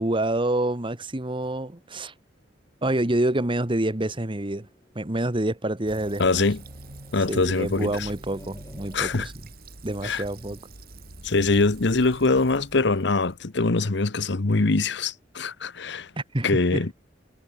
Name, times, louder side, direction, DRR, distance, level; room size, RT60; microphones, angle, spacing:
voice 1, 0.0-2.1 2.8-4.7 4.9-6.4 7.3-9.3 9.8-10.6 16.2-16.9, right 1 dB, 25° right, 1.5 m, -27 dB
sound 1, 3.5-5.3 5.7-7.4 7.7-9.2 9.9-10.7, left 1 dB, 20° left, 4.5 m, -55 dB
Fill (with liquid), 5.9-13.5, right 2 dB, 55° right, 3.6 m, -45 dB
voice 2, 6.2-6.6 7.1-8.1 8.9-9.3 10.0-10.2 11.2-16.1 16.4-16.9, left 3 dB, 65° left, 1.0 m, -23 dB
head